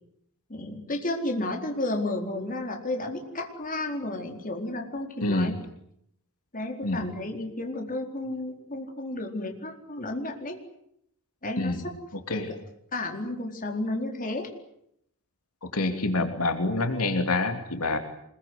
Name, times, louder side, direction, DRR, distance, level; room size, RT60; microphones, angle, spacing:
voice 1, 0.5-5.5 6.5-10.6 11.4-11.8 12.3-12.5 12.9-14.5, left 2 dB, 40° left, 3 dB, 4.3 m, -32 dB
voice 2, 5.2-5.6 6.8-7.0 11.6-11.8 12.3-12.5 15.7-18.0, left 2 dB, 80° left, 6 dB, 2.9 m, -26 dB
25.5 x 22.0 x 9.7 m, 0.73 s
head